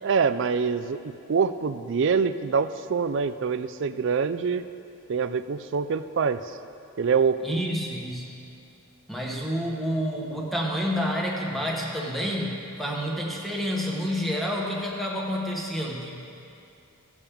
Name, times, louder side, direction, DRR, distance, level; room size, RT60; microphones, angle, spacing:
voice 1, 0.0-4.6 5.1-6.6 7.0-7.4, right 5 dB, 55° right, 12 dB, 0.3 m, -25 dB
voice 2, 7.4-8.3 9.1-16.2, equal, ahead, -2 dB, 1.1 m, -29 dB
16.5 x 7.2 x 3.5 m, 2.6 s
head